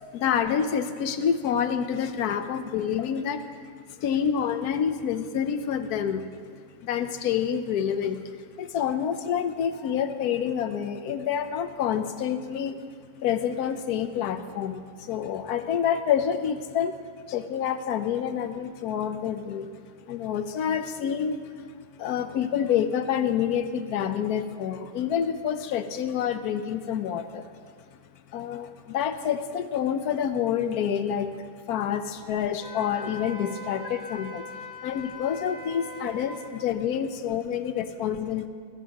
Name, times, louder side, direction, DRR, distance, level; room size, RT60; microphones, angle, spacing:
voice 1, 0.1-3.4 4.0-6.3 6.8-8.2 8.6-12.8 13.2-17.0 17.3-19.7 20.1-21.5 22.0-27.5 28.3-34.4 34.8-38.5, left 8 dB, 70° left, 10 dB, 1.2 m, -28 dB
Wind instrument woodwind instrument, 32.6-36.5, left 2 dB, 85° right, 5.3 m, -41 dB
21.0 x 16.5 x 2.9 m, 2.1 s
omnidirectional pair, 1.7 m